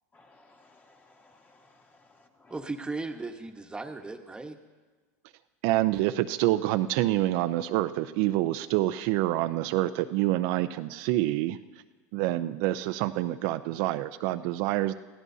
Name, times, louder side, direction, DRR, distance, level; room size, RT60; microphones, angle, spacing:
voice 1, 0.1-2.6, left 2 dB, 20° left, 2 dB, 1.7 m, -60 dB
voice 2, 2.5-4.6, right 3 dB, 10° right, 4 dB, 1.3 m, -36 dB
voice 3, 5.6-11.6 12.1-14.9, right 15 dB, 60° right, 9 dB, 0.5 m, -27 dB
25.5 x 16.0 x 2.8 m, 1.3 s
supercardioid pair, 110°, 9 cm